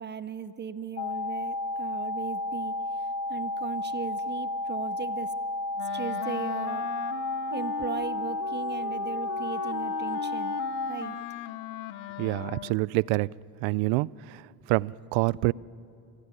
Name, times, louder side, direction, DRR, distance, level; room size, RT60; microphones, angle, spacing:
voice 1, 0.0-5.4 5.9-6.9 7.5-10.6 10.9-11.2, right 7 dB, 25° right, 13 dB, 0.5 m, -37 dB
sound 1, 1.0-11.0, left 2 dB, 40° left, 0.9 m, -32 dB
Wind instrument woodwind instrument, 5.8-12.9, left 13 dB, 85° left, 1.0 m, -38 dB
voice 2, 12.2-13.3 13.6-14.4 14.7-15.5, right 22 dB, 75° right, 22 dB, 0.5 m, -26 dB
27.0 x 15.5 x 9.7 m, 2.6 s
cardioid pair, 115°, 47 cm